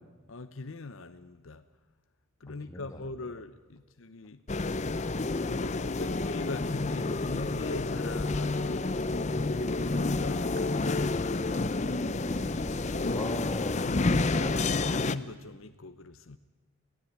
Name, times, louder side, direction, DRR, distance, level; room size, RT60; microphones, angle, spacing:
voice 1, 0.3-1.6 2.4-4.4 5.5-11.3 13.9-16.4, left 3 dB, 75° left, 9 dB, 0.9 m, -42 dB
voice 2, 2.7-3.0 12.2-13.9 14.4-14.6, left 1 dB, 15° left, 6 dB, 1.7 m, -40 dB
sound 1, 4.5-15.2, left 3 dB, 35° left, 0.6 m, -29 dB
Insect, 7.4-13.4, right 1 dB, 40° right, 2.6 m, -48 dB
22.0 x 16.0 x 9.5 m, 1.2 s
head